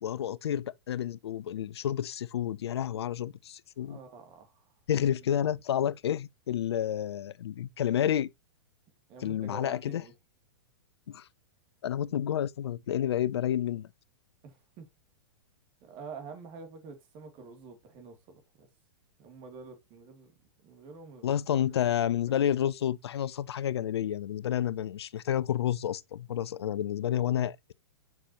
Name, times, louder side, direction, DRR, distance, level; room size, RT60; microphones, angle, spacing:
voice 1, 0.0-4.0 4.9-8.3 9.2-10.0 11.1-11.3 11.8-13.9 21.2-27.7, left 10 dB, 75° left, 0.5 m, -30 dB
voice 2, 3.9-4.6 9.1-10.1 14.4-14.9 15.8-18.7 19.2-20.3 20.6-21.4, right 5 dB, 40° right, 2.7 m, -47 dB
7.6 x 5.8 x 3.0 m
hypercardioid pair, 115°, 14 cm